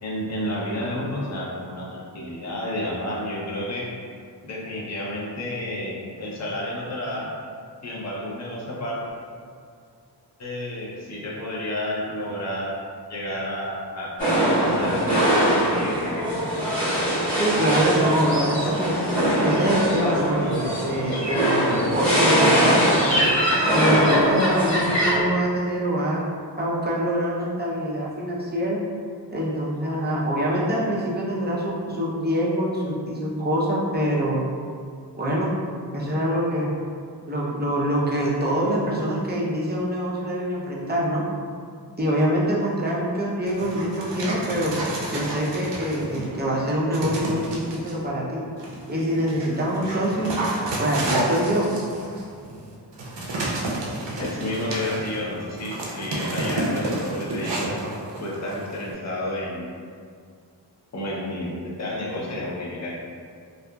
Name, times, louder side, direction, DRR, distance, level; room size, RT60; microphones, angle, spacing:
voice 1, 0.0-3.9 4.4-7.3 7.8-9.0 10.4-12.8 13.1-15.5 15.8-16.0 54.2-57.7 58.2-59.7 60.9-63.0, left 1 dB, 40° left, -5 dB, 0.6 m, -31 dB
sound 1, 14.2-25.2, equal, 20° left, 1.3 m, -21 dB
voice 2, 17.3-19.0 19.4-23.3 23.6-26.2 26.6-28.8 29.3-34.4 35.1-35.5 35.9-36.7 37.3-41.2 42.0-44.8 45.1-48.4 48.9-50.3 50.8-51.7, equal, 25° right, -6 dB, 0.5 m, -25 dB
Dog, 43.5-46.4 46.9-48.0 48.6-58.9, right 2 dB, 80° right, 0.5 m, -30 dB
2.7 x 2.4 x 2.2 m, 2.2 s
wide cardioid pair, 50°, 43 cm